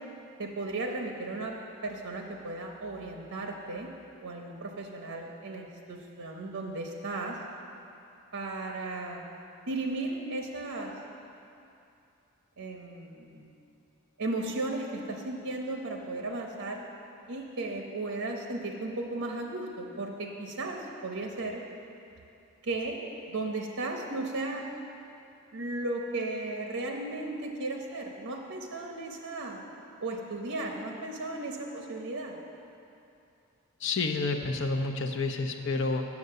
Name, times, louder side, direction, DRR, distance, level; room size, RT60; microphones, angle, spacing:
voice 1, 0.4-1.6 1.8-3.9 4.2-7.4 8.3-9.2 9.7-10.9 12.6-13.5 14.2-16.8 17.3-21.6 22.6-23.0 23.3-24.7 25.5-29.6 30.0-32.4, right 2 dB, 85° right, 2 dB, 0.9 m, -35 dB
voice 2, 33.8-36.1, left 3 dB, 55° left, 5 dB, 0.7 m, -29 dB
9.5 x 7.2 x 6.6 m, 2.7 s
head